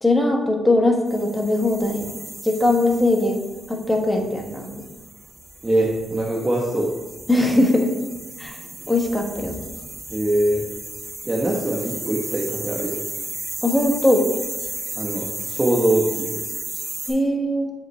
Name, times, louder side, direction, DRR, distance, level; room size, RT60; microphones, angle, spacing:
voice 1, 0.0-2.1 2.4-4.8 7.3-7.9 8.4-8.6 8.9-9.6 13.6-14.3 17.1-17.7, left 1 dB, 10° left, 2 dB, 1.1 m, -20 dB
sound 1, 1.1-17.1, right 2 dB, 35° right, 2.1 m, -34 dB
voice 2, 5.6-6.9 10.1-10.6 11.2-13.0 15.0-16.4, right 1 dB, 20° right, -3 dB, 1.0 m, -22 dB
7.5 x 5.3 x 3.2 m, 1.2 s
cardioid pair, 90°, 0 cm